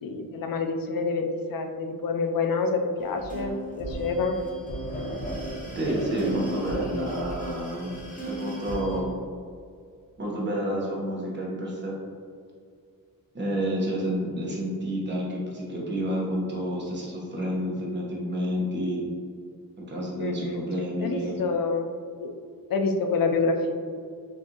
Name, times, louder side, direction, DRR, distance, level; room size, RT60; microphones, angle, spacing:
voice 1, 0.0-4.4 20.2-20.6 21.0-21.9 22.2-22.3 22.7-23.7, left 4 dB, 75° left, 5 dB, 0.5 m, -27 dB
sound 1, 3.0-9.0, right 1 dB, 25° left, 0.8 m, -35 dB
voice 2, 5.7-9.1 10.2-11.9 13.3-19.1 19.9-21.4, equal, 30° right, -4 dB, 1.0 m, -29 dB
6.4 x 2.6 x 2.9 m, 2.2 s
wide cardioid pair, 155°, 35 cm